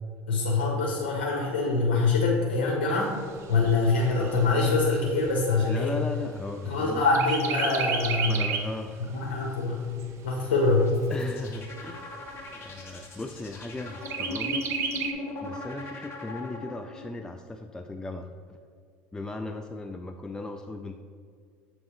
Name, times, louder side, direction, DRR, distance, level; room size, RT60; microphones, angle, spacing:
voice 1, 0.3-3.2 3.5-5.9 6.6-8.4 9.1-9.9 10.2-10.9, left 3 dB, 85° left, -2 dB, 0.8 m, -24 dB
Chirp tweet, 3.0-6.7 7.1-8.8 9.2-9.3 9.7-10.7 11.3-11.4 11.7-11.8 12.3-12.8 14.0-15.1, right 6 dB, 50° right, 0.6 m, -33 dB
voice 2, 5.6-7.0 8.3-9.3 11.1-12.2 12.5-14.6 15.4-18.6 19.1-21.0, left 2 dB, 10° left, 5 dB, 0.3 m, -37 dB
sound 1, 10.8-17.1, left 2 dB, 45° left, 1.2 m, -39 dB
7.2 x 3.2 x 4.4 m, 2.2 s
supercardioid pair, 90°, 6 cm